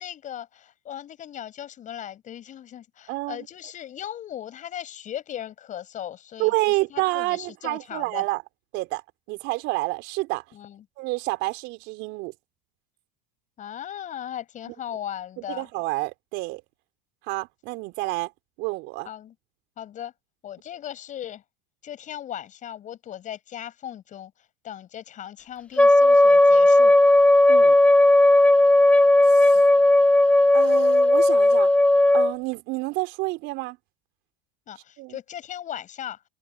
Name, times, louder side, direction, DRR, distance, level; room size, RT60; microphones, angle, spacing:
voice 1, 0.0-8.2 10.5-10.8 13.6-15.7 19.1-19.3 19.8-20.1 20.4-21.4 21.8-24.3 24.6-27.0 34.7-36.2, left 10 dB, 40° left, 7.0 m, -37 dB
voice 2, 3.1-3.5 6.4-8.4 8.7-9.0 9.3-10.5 11.0-12.3 14.7-14.8 15.4-16.6 17.2-18.3 18.6-19.1 27.5-27.8 29.3-29.6 30.5-31.7 32.1-33.8 35.0-35.2, right 22 dB, 60° right, 4.3 m, -29 dB
Wind instrument woodwind instrument, 25.8-32.3, left 1 dB, 5° left, 1.4 m, -16 dB
supercardioid pair, 105°, 20 cm